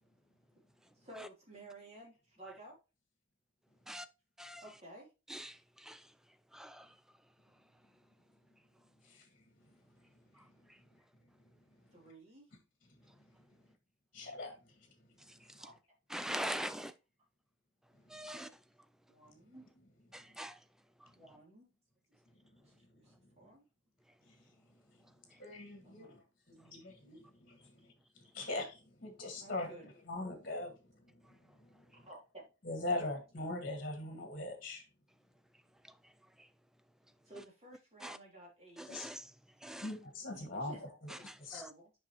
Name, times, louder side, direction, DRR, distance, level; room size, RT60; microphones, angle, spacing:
voice 1, 0.9-2.8 4.6-5.1 11.9-12.5 15.6-15.7 19.1-19.6 21.1-21.7 22.6-23.6 25.8-26.1 29.4-29.9 31.9-32.5 37.2-38.9 40.6-41.0 41.4-41.9, right 2 dB, 30° right, 3.0 m, -55 dB
voice 2, 5.3-6.0 6.5-6.9 16.1-16.9 18.1-18.5 19.5-19.6 20.1-20.6 37.3-37.4 38.0-38.2 38.8-39.3 39.6-39.9 41.1-41.7, right 1 dB, 5° right, 0.3 m, -42 dB
voice 3, 14.1-14.5 18.2-18.4 24.3-24.4 25.4-26.2 26.5-30.7 31.6-31.8 32.6-34.8 38.9-39.1 39.8-41.6, left 2 dB, 45° left, 1.8 m, -41 dB
7.5 x 5.4 x 3.0 m
head